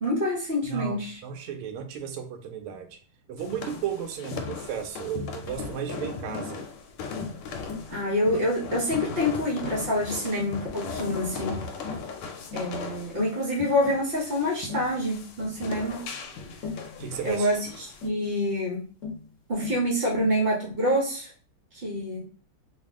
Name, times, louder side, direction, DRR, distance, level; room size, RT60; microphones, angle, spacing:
voice 1, 0.0-1.2 7.9-11.7 12.5-16.1 17.2-18.8 19.5-21.3 21.7-22.2, equal, 45° right, -4 dB, 0.7 m, -27 dB
voice 2, 0.6-3.0 3.3-6.7 16.8-17.5, right 8 dB, 80° right, 5 dB, 1.5 m, -34 dB
sound 1, 3.4-18.1, left 5 dB, 85° left, 1.5 m, -38 dB
Tap, 5.5-5.7 6.3-6.5 7.2-7.4 7.7-7.9 8.4-8.6 8.9-9.2 9.7-9.9 10.4-10.6 11.0-11.3 11.8-12.1 12.5-12.8 13.2-13.4 13.8-14.0 14.7-14.9 15.4-15.6 16.6-16.9 18.0-18.2 19.0-19.3 19.6-19.9 20.2-20.4, left 5 dB, 50° left, 1.0 m, -38 dB
3.4 x 2.4 x 3.5 m, 0.41 s
omnidirectional pair, 2.4 m